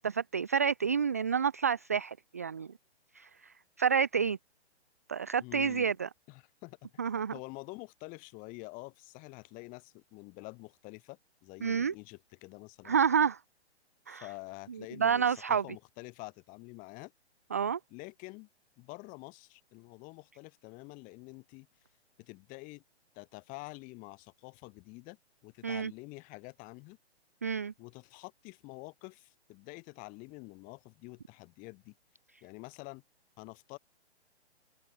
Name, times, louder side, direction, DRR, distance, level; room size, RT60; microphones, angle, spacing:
voice 1, 0.0-2.7 3.2-3.3 3.8-4.4 5.1-6.1 7.0-7.3 11.6-11.9 12.8-13.4 14.1-14.2 15.0-15.6 17.5-17.8 25.6-25.9 27.4-27.7, right 7 dB, 15° right, 0.4 m, -29 dB
voice 2, 5.4-5.9 6.3-6.8 7.3-13.0 14.1-17.1 17.9-18.5 18.8-21.7 22.2-22.8 23.1-25.2 25.4-27.0 27.8-31.9 32.4-33.0 33.4-33.8, left 26 dB, 25° left, 8.0 m, -47 dB
hypercardioid pair, 155°, 33 cm